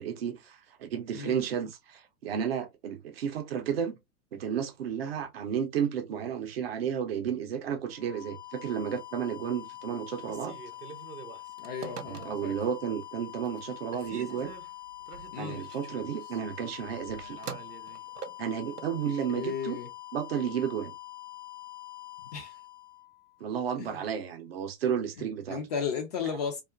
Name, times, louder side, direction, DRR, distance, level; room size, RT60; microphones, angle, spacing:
voice 1, 0.0-4.0 4.3-10.6 12.1-14.5 15.4-17.4 18.4-19.8 20.1-20.9 23.4-25.6 26.2-26.4, right 8 dB, 40° right, 0.5 m, -32 dB
sound 1, 7.9-23.7, left 15 dB, 45° left, 0.8 m, -45 dB
Telephone, 10.2-12.7 13.1-13.6 13.9-19.0, right 6 dB, 90° right, 0.5 m, -45 dB
voice 2, 11.6-12.6 15.3-15.6 19.3-19.9 22.3-22.5 23.8-23.9 25.5-26.6, left 6 dB, 30° left, 0.4 m, -34 dB
2.4 x 2.3 x 2.2 m
figure-of-eight pair, 105°, 46 cm